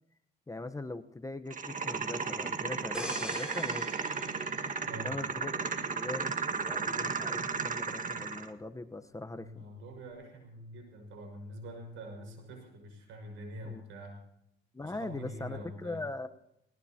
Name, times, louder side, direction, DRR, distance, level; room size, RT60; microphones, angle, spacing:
voice 1, 0.5-4.0 4.9-5.6 5.9-6.3 6.6-9.7 13.6-13.8 14.7-16.3, left 2 dB, 15° left, 9 dB, 1.0 m, -41 dB
sound 1, 1.5-8.5, right 5 dB, 40° right, 1.7 m, -34 dB
sound 2, 2.9-5.6 6.1-6.3, equal, 5° right, 4.6 m, -42 dB
voice 2, 9.3-14.1 14.8-16.0, equal, 90° right, 3 dB, 5.6 m, -45 dB
19.5 x 19.5 x 2.9 m, 0.79 s
cardioid pair, 90°, 20 cm